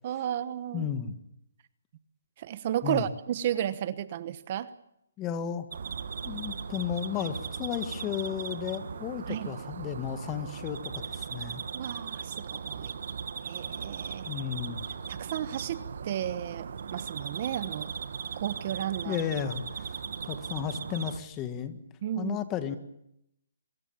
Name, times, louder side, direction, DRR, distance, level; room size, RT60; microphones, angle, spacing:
voice 1, 0.0-0.8 2.4-4.7 9.3-9.5 11.7-12.9 13.5-14.3 15.1-17.9 18.3-19.2 22.0-22.4, right 11 dB, 40° right, 14 dB, 1.1 m, -33 dB
voice 2, 0.7-1.1 2.8-3.1 5.2-5.7 6.2-11.6 14.3-14.8 19.0-19.9 20.2-21.8 22.2-22.8, left 9 dB, 20° left, 10 dB, 1.7 m, -33 dB
sound 1, 5.7-21.2, right 6 dB, 60° right, 1.8 m, -38 dB
24.5 x 21.5 x 7.3 m, 0.78 s
hypercardioid pair, 160°, 0 cm